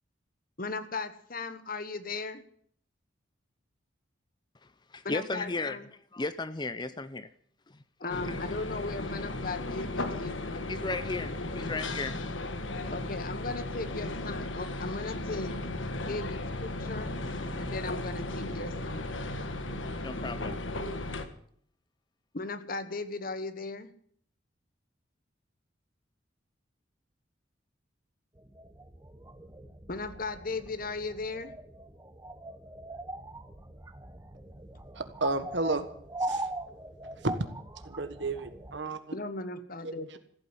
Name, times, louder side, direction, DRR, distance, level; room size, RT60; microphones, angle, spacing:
voice 1, 0.6-2.4 5.0-5.8 8.0-10.8 11.2-11.7 12.9-15.5 16.1-17.1 17.6-19.1 22.3-23.9 29.9-31.5 39.1-40.2, left 3 dB, 45° left, 1.2 m, -37 dB
voice 2, 4.9-5.8 6.1-7.3 7.7-8.4 10.7-12.2 20.0-20.6, left 3 dB, 20° left, 0.6 m, -35 dB
sound 1, 8.1-21.3, left 2 dB, 80° left, 1.6 m, -35 dB
sound 2, 28.4-38.8, right 2 dB, 15° right, 0.9 m, -41 dB
voice 3, 34.9-35.8 36.3-36.5 37.2-37.3 37.8-39.0 39.8-39.9, right 2 dB, 65° right, 1.5 m, -31 dB
15.0 x 9.1 x 9.7 m
head